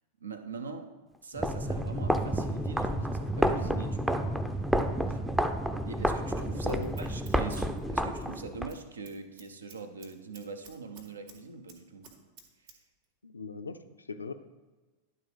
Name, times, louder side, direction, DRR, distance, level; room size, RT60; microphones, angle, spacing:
voice 1, 0.2-0.9 1.2-4.3 5.1-5.2 5.8-12.1, right 4 dB, 75° right, 8 dB, 0.7 m, -43 dB
sound 1, 1.3-8.7, right 1 dB, 5° right, 0.5 m, -30 dB
Scissors, 6.3-8.3 8.6-8.8 9.1-11.4 11.7-12.8 13.0-13.1, right 6 dB, 50° right, 1.5 m, -54 dB
voice 2, 13.2-14.3, left 4 dB, 75° left, 9 dB, 0.4 m, -39 dB
11.0 x 3.8 x 4.9 m, 1.2 s
figure-of-eight pair, 90°, 0 cm